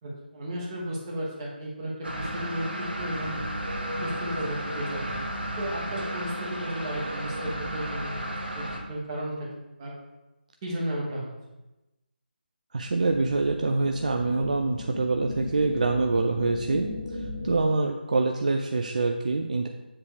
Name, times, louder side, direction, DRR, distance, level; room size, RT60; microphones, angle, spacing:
voice 1, 0.0-3.4 4.0-9.5 9.8-9.9 10.6-11.3, right 1 dB, 25° right, -5 dB, 1.3 m, -34 dB
sound 1, 2.0-8.8, right 1 dB, 80° right, 1.4 m, -33 dB
voice 2, 12.7-16.9 17.4-19.7, right 3 dB, 45° right, 4 dB, 0.4 m, -25 dB
sound 2, 12.9-17.9, left 2 dB, 40° left, 1.8 m, -38 dB
7.4 x 3.2 x 4.8 m, 1.0 s
figure-of-eight pair, 155°, 6 cm